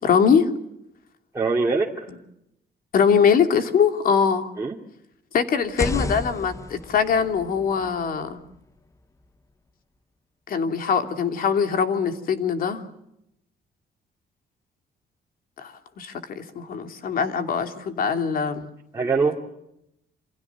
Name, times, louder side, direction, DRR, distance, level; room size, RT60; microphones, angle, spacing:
voice 1, 0.0-0.5 2.9-4.5 5.3-8.4 10.5-12.8 15.6-18.7, left 6 dB, 60° left, 7 dB, 2.9 m, -22 dB
voice 2, 1.3-2.1 4.6-4.8 18.9-19.4, right 4 dB, 20° right, -2 dB, 2.6 m, -23 dB
sound 1, 5.6-9.5, left 2 dB, 20° left, 1.2 m, -33 dB
28.5 x 27.5 x 7.2 m, 0.82 s
cardioid pair, 145°, 17 cm